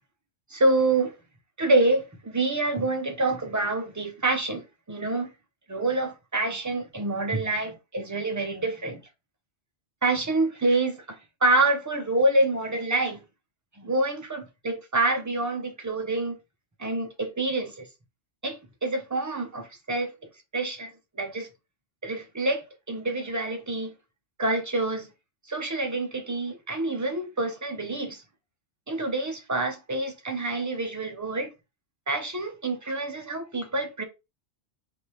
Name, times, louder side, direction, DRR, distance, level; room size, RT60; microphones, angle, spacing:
voice 1, 0.5-1.1 1.6-5.3 5.7-9.0 10.0-13.2 13.8-16.4 16.8-17.9 18.4-20.1 20.5-21.5 22.0-23.9 24.4-25.1 25.5-28.2 28.9-31.5 32.1-34.0, right 2 dB, 25° right, 0.4 m, -27 dB
3.3 x 2.7 x 3.0 m
omnidirectional pair, 1.2 m